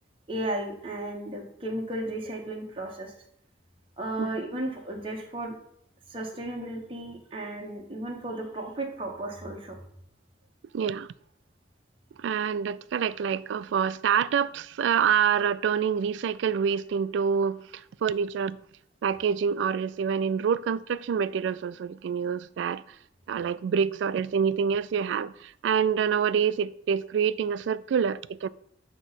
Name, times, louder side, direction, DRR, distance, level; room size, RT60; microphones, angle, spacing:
voice 1, 0.3-3.1 4.0-5.6 6.1-9.8, right 1 dB, 30° right, 1.1 m, -34 dB
voice 2, 10.7-11.1 12.2-18.6 19.0-22.8 23.3-28.5, right 7 dB, 90° right, 0.3 m, -26 dB
8.2 x 3.0 x 5.7 m
head